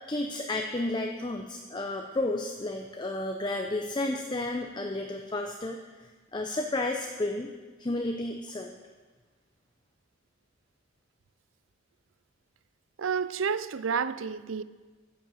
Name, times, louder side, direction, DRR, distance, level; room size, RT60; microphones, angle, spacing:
voice 1, 0.1-5.8 6.3-7.5 7.8-8.8, left 2 dB, 25° left, 0.7 m, -32 dB
voice 2, 13.0-14.6, right 6 dB, 85° right, 0.5 m, -30 dB
10.5 x 7.8 x 7.2 m
head